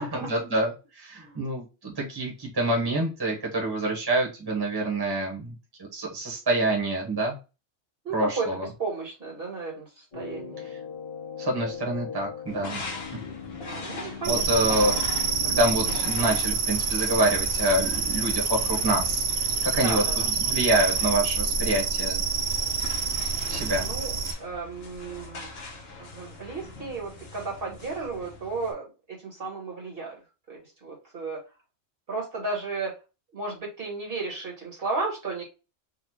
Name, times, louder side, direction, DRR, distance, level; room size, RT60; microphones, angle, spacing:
voice 1, 0.3-5.6 5.9-7.4 8.1-8.7 11.4-12.8 14.0-15.0 15.4-19.2 19.6-22.2 23.5-23.8, right 1 dB, 20° right, -2 dB, 1.1 m, -26 dB
voice 2, 8.0-10.7 13.5-15.0 15.4-15.6 19.8-20.1 23.8-24.1 24.4-25.5 26.0-30.2 30.5-31.4 32.1-32.9 33.3-35.4, right 3 dB, 50° right, -2 dB, 1.4 m, -34 dB
sound 1, 10.1-16.0, left 6 dB, 85° left, 1.8 m, -39 dB
sound 2, 12.5-28.7, left 3 dB, 60° left, 1.0 m, -42 dB
sound 3, 14.2-24.3, right 5 dB, 70° right, 0.9 m, -27 dB
4.0 x 2.4 x 3.0 m, 0.30 s
omnidirectional pair, 1.3 m